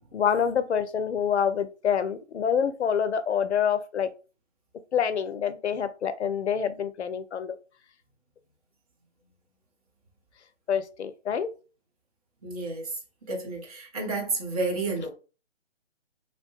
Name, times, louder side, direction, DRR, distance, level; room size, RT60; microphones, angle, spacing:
voice 1, 0.1-4.1 4.9-7.6 10.7-11.5, left 7 dB, 65° left, 0.5 m, -26 dB
voice 2, 12.4-12.8 13.3-15.1, right 3 dB, 30° right, 0.7 m, -30 dB
2.7 x 2.1 x 3.0 m
figure-of-eight pair, 140°, 36 cm